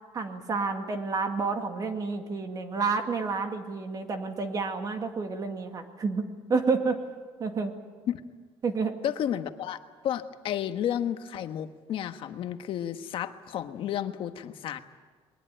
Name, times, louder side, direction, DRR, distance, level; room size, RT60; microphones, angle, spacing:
voice 1, 0.1-7.0 7.4-7.7 8.6-9.0, right 4 dB, 35° right, 5 dB, 2.2 m, -29 dB
voice 2, 9.0-9.8 10.0-14.8, left 10 dB, 60° left, 8 dB, 1.4 m, -32 dB
21.5 x 20.0 x 9.1 m, 1.5 s
cardioid pair, 130°, 10 cm